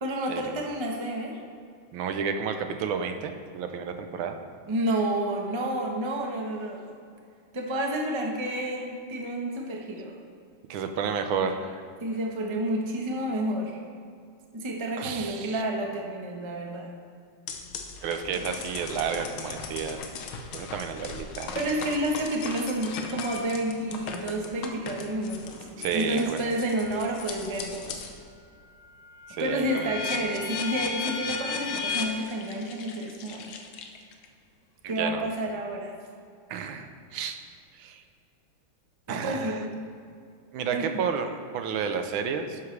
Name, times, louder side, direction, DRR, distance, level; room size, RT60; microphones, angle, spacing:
voice 1, 0.0-1.4 4.7-6.9 7.5-10.2 12.0-13.8 14.5-16.9 20.6-20.7 21.5-28.0 29.4-33.5 34.8-36.0 39.1-39.7 40.7-41.0, right 1 dB, 20° right, 0 dB, 0.7 m, -30 dB
voice 2, 1.9-4.4 10.7-11.8 15.0-15.6 18.0-20.0 20.5-21.5 25.8-26.4 29.3-29.9 34.8-35.2 36.5-37.4 37.8-38.0 39.1-39.6 40.5-42.6, right 6 dB, 80° right, 7 dB, 1.5 m, -31 dB
sound 1, 17.5-28.2 28.6-34.2, left 5 dB, 85° left, 1.7 m, -37 dB
11.5 x 9.5 x 3.3 m, 2.3 s
omnidirectional pair, 2.2 m